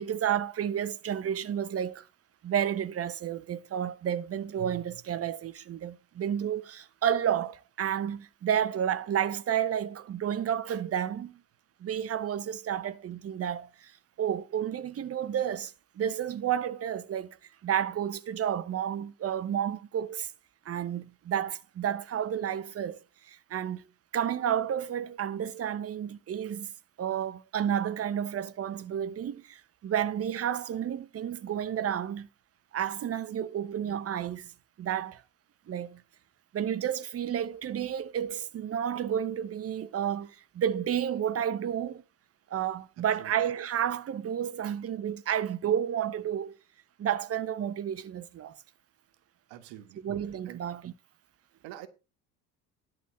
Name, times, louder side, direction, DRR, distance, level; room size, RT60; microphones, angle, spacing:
voice 1, 0.0-2.1 2.4-11.4 11.8-13.9 14.2-17.4 17.6-20.3 20.7-23.0 23.3-23.8 24.1-26.7 27.0-32.3 32.7-34.5 34.8-35.2 35.7-36.0 36.5-42.0 42.5-46.6 47.0-48.6 50.0-50.9, right 9 dB, 30° right, 0.9 m, -31 dB
voice 2, 49.5-50.0 50.5-50.6 51.6-51.9, right 13 dB, 60° right, 1.4 m, -45 dB
11.0 x 4.1 x 7.4 m
hypercardioid pair, 70°, 49 cm